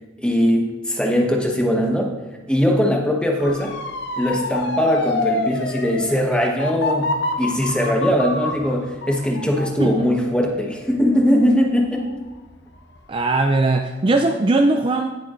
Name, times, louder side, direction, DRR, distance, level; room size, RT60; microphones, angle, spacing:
voice 1, 0.2-2.1 2.5-3.7 4.2-12.2, equal, 5° left, 1 dB, 1.0 m, -20 dB
Motor vehicle (road) / Siren, 3.4-12.3 12.7-13.2, left 2 dB, 55° left, 0.8 m, -28 dB
voice 2, 13.1-15.1, right 2 dB, 25° right, 5 dB, 0.3 m, -19 dB
17.5 x 6.9 x 2.5 m, 1.2 s
head